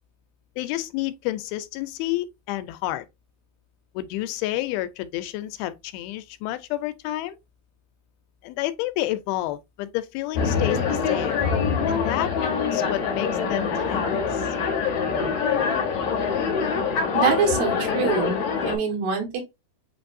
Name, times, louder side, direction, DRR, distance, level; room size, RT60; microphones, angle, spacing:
voice 1, 0.6-3.1 4.0-7.4 8.4-11.4 11.9-12.3 12.7-14.4, left 15 dB, 85° left, 2.4 m, -30 dB
sound 1, 10.4-18.8, left 6 dB, 60° left, 2.2 m, -24 dB
voice 2, 17.1-19.4, right 5 dB, 75° right, 3.3 m, -25 dB
7.8 x 2.6 x 2.5 m
omnidirectional pair, 4.4 m